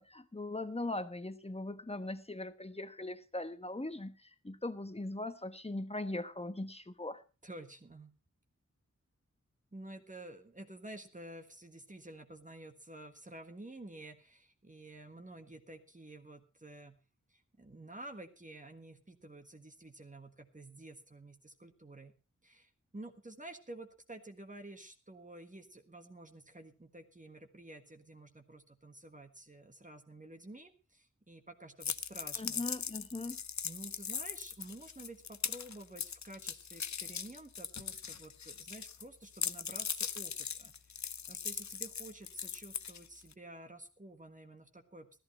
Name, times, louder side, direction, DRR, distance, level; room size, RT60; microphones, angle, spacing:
voice 1, 0.0-7.2 32.4-33.4, left 2 dB, 20° left, 10 dB, 1.2 m, -40 dB
voice 2, 7.4-8.1 9.7-17.0 17.3-22.1 22.4-32.6 33.6-45.2, right 1 dB, 25° right, 5 dB, 1.6 m, -51 dB
sound 1, 31.8-39.0 39.3-43.3, left 7 dB, 70° left, 0.7 m, -40 dB
14.5 x 13.5 x 4.3 m, 0.32 s
wide cardioid pair, 80°, 29 cm